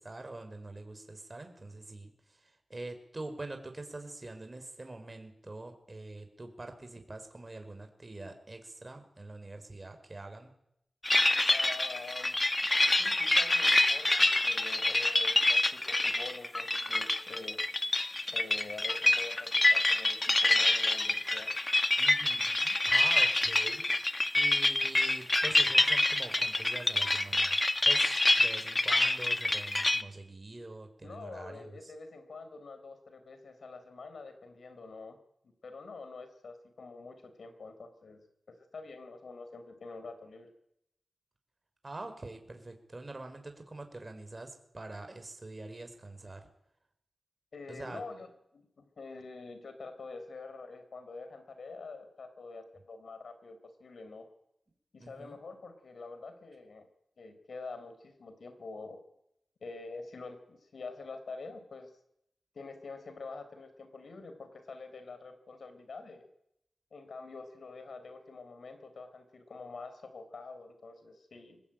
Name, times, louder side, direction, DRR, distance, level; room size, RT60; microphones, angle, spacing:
voice 1, 0.0-10.5 22.0-23.8 24.3-27.6 27.8-31.9 41.8-46.5 47.7-48.0 55.0-55.4, right 2 dB, 35° right, 6 dB, 5.2 m, -45 dB
sound 1, 11.0-30.0, left 2 dB, 30° left, 1.4 m, -27 dB
voice 2, 11.5-17.6 18.3-21.5 31.0-35.2 35.6-38.2 38.5-40.5 47.5-54.3 54.9-56.9 57.2-59.0 59.6-61.9 62.5-66.3 66.9-71.6, left 3 dB, 80° left, 9 dB, 4.4 m, -46 dB
23.0 x 19.5 x 9.2 m, 0.78 s
cardioid pair, 55°, 0 cm